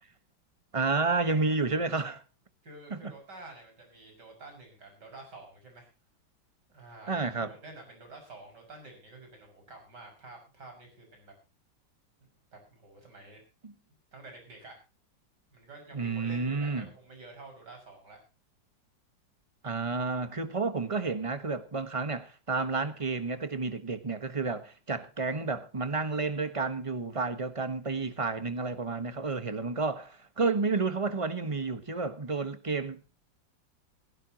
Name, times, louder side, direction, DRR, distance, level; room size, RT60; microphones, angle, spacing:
voice 1, 0.7-2.2 2.9-3.0 7.1-7.5 13.6-13.7 15.9-16.9 19.6-33.2, right 4 dB, 20° right, 1.1 m, -31 dB
voice 2, 2.6-5.9 6.7-11.3 12.5-13.4 14.1-14.8 15.5-18.2, right 2 dB, 60° right, 6.7 m, -49 dB
17.5 x 16.0 x 2.9 m
omnidirectional pair, 2.0 m